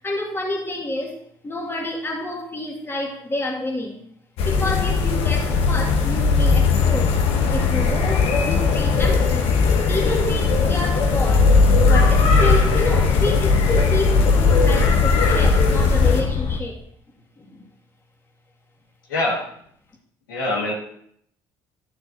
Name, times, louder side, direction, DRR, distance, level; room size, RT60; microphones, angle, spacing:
voice 1, 0.0-1.2 1.4-4.0 4.4-7.2 7.5-9.6 9.9-11.6 11.9-16.8 17.4-17.6, left 2 dB, 20° left, -1 dB, 2.1 m, -29 dB
sound 1, 4.4-16.2, left 4 dB, 70° left, 1.2 m, -18 dB
sound 2, 11.2-16.6, left 3 dB, 45° left, 1.1 m, -26 dB
voice 2, 20.3-20.7, left 2 dB, 90° left, -3 dB, 1.8 m, -23 dB
11.0 x 6.3 x 2.7 m, 0.66 s
hypercardioid pair, 60°, 11 cm